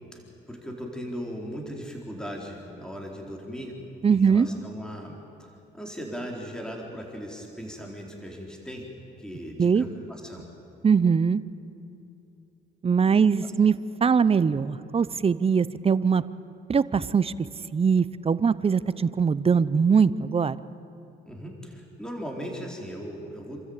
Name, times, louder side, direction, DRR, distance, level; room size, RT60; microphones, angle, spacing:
voice 1, 0.5-3.7 4.0-8.9 9.2-10.5 13.0-13.5 21.3-23.6, equal, 5° left, 0 dB, 3.9 m, -38 dB
voice 2, 4.0-4.5 9.6-9.9 10.8-11.4 12.8-13.8 14.0-16.2 16.7-17.3 17.7-20.6, right 6 dB, 30° right, 16 dB, 0.7 m, -21 dB
28.5 x 13.5 x 8.8 m, 2.8 s
cardioid pair, 90°, 20 cm